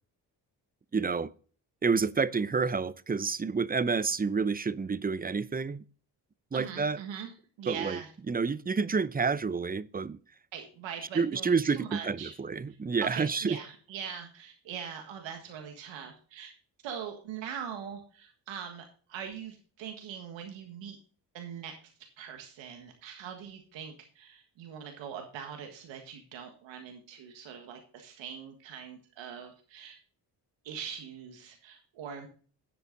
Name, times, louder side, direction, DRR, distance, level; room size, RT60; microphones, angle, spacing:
voice 1, 0.9-1.3 1.8-5.8 6.5-7.0 7.7-8.0 8.3-10.2 11.1-13.6, right 5 dB, 20° right, 0.6 m, -29 dB
voice 2, 6.5-7.3 7.6-8.1 10.5-12.3 13.0-16.5 16.8-21.0 21.3-21.7 22.2-30.0 30.6-32.3, right 8 dB, 85° right, 1.6 m, -42 dB
10.0 x 8.0 x 3.8 m
supercardioid pair, 55°, 44 cm